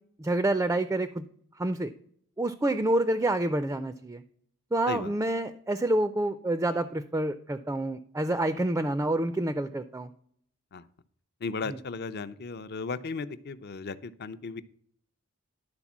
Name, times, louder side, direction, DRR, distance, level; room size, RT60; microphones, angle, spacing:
voice 1, 0.2-1.2 1.6-1.9 2.4-4.2 4.7-10.1 11.7-11.8, right 1 dB, 15° right, 12 dB, 0.4 m, -28 dB
voice 2, 11.4-14.6, left 4 dB, 50° left, 14 dB, 0.5 m, -35 dB
11.5 x 4.3 x 7.2 m, 0.63 s
head